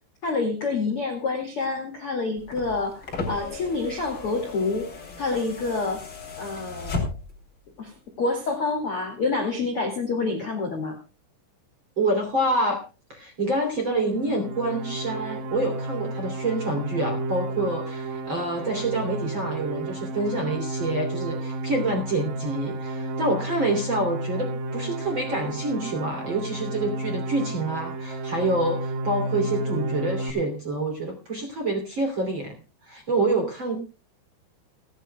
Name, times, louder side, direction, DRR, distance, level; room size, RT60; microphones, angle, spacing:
voice 1, 0.2-4.9 5.2-6.0 6.4-7.1 7.8-11.0, left 3 dB, 45° left, 3 dB, 1.9 m, -27 dB
sound 1, 2.4-7.5 8.7-8.8, left 3 dB, 30° left, 2.9 m, -35 dB
voice 2, 12.0-12.8 13.1-32.5 32.8-33.8, right 2 dB, 30° right, 2 dB, 2.7 m, -27 dB
sound 2, 14.0-30.3, right 2 dB, 60° right, 2.6 m, -32 dB
29.5 x 10.0 x 2.2 m, 0.31 s
omnidirectional pair, 5.9 m